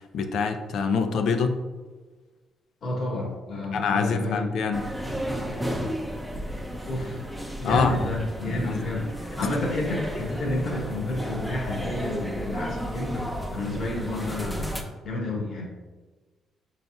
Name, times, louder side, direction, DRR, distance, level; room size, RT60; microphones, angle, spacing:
voice 1, 0.0-1.6 3.7-4.9 7.6-8.1 8.7-8.8 9.4-9.6, left 5 dB, 70° left, 7 dB, 0.4 m, -25 dB
voice 2, 2.8-4.6 6.8-7.2 7.6-15.6, left 2 dB, 55° left, -3 dB, 1.4 m, -30 dB
sound 1, 4.7-14.8, equal, ahead, 0.6 m, -33 dB
5.6 x 4.0 x 2.3 m, 1.3 s
cardioid pair, 90°, 0 cm